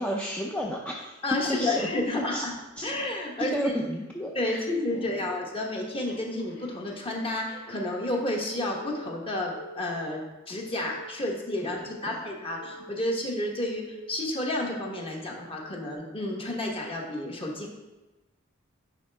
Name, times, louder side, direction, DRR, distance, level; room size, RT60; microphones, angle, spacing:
voice 1, 0.0-1.2 1.5-1.9 2.3-2.5 2.8-2.9 3.4-5.1 11.6-11.9, equal, 5° left, -2 dB, 0.4 m, -32 dB
voice 2, 1.2-2.5 2.8-3.7 4.3-17.7, left 1 dB, 30° left, -1 dB, 1.1 m, -31 dB
Telephone, 6.1-8.5 8.8-9.1 9.6-10.1 10.6-11.1 11.6-12.1 12.6-13.1 13.6-14.1 14.6-15.1 15.6-15.9, left 1 dB, 75° left, 2.0 m, -47 dB
9.0 x 4.3 x 3.4 m, 1.1 s
head